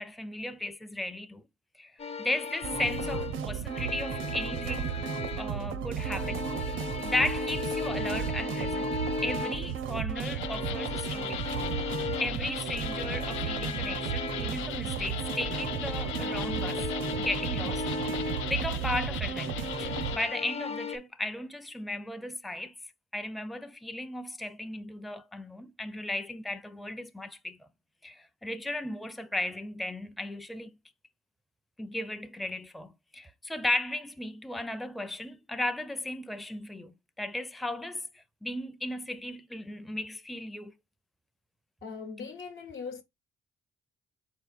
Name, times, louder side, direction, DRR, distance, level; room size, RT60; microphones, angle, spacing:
voice 1, 0.0-1.4 1.8-1.9 2.2-5.0 5.4-6.7 7.0-11.4 12.2-16.8 17.2-17.9 18.5-22.7 23.1-27.7 28.0-30.8 31.8-40.7, left 1 dB, ahead, 0.4 m, -35 dB
Spooky strings, 2.0-5.6 6.0-9.8 10.3-14.7 15.0-18.6 19.4-21.0, left 4 dB, 30° left, 0.7 m, -36 dB
sound 1, 2.6-20.2, right 8 dB, 80° right, 0.6 m, -34 dB
sound 2, 10.1-20.3, left 12 dB, 80° left, 0.4 m, -39 dB
voice 2, 41.8-43.0, left 5 dB, 65° left, 0.9 m, -40 dB
4.2 x 3.7 x 2.4 m
cardioid pair, 90°, 20 cm